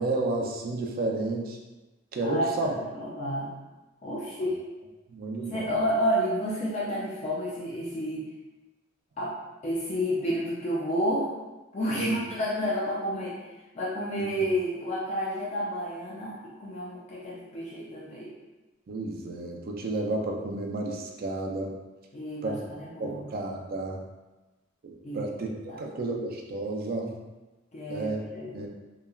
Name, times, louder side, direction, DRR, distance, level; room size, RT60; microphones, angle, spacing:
voice 1, 0.0-1.6 2.1-2.7 4.4-4.5 5.1-5.9 11.9-12.2 18.9-21.7 22.4-24.0 24.8-25.5 25.8-27.2 27.9-28.2 28.5-28.7, right 2 dB, 50° right, 1 dB, 0.4 m, -32 dB
voice 2, 2.2-3.5 4.0-4.6 5.5-8.3 9.2-9.3 9.6-11.3 11.7-13.4 13.7-18.3 22.1-23.3 25.0-25.3 25.7-25.8 27.7-28.6, equal, 35° left, -6 dB, 0.4 m, -30 dB
3.1 x 2.3 x 2.2 m, 1.1 s
head